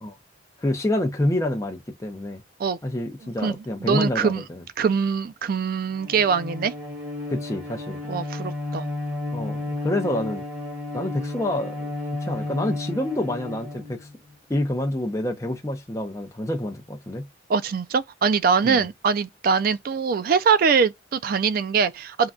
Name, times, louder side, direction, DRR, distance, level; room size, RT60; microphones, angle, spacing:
voice 1, 0.6-2.4 2.8-4.6 7.3-8.0 9.3-10.4 10.9-11.9 12.2-14.1 14.5-17.3 18.6-18.8, left 1 dB, 15° left, 0.5 m, -27 dB
voice 2, 3.4-4.4 4.8-6.7 8.1-8.9 17.5-22.3, right 5 dB, 50° right, 0.3 m, -23 dB
Bowed string instrument, 5.9-14.3, left 2 dB, 65° right, 1.5 m, -32 dB
3.6 x 2.2 x 2.3 m
head